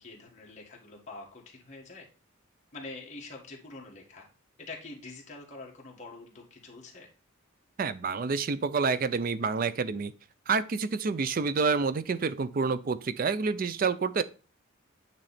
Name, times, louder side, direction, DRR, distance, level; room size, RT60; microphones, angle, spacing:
voice 1, 0.0-2.1 2.7-4.3 4.6-7.1, left 3 dB, 35° left, -2 dB, 1.7 m, -45 dB
voice 2, 7.8-10.1 10.5-14.2, right 4 dB, 40° right, 15 dB, 0.4 m, -28 dB
9.0 x 3.2 x 4.2 m, 0.35 s
head